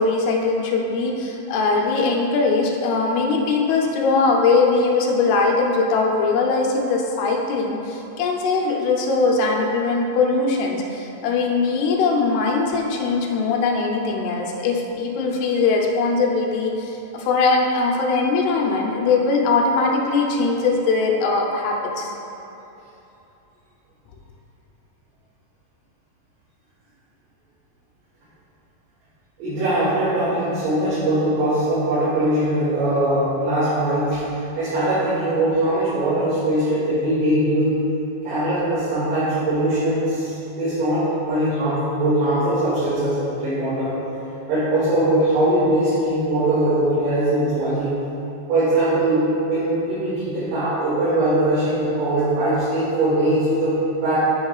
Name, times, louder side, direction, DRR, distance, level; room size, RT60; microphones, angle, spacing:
voice 1, 0.0-22.1, left 3 dB, 80° left, 0 dB, 2.7 m, -21 dB
voice 2, 29.4-34.2 34.6-37.8 38.2-44.0 44.5-48.0 48.5-54.2, right 1 dB, 80° right, -13 dB, 4.1 m, -21 dB
9.5 x 9.2 x 2.4 m, 3.0 s
omnidirectional pair, 4.7 m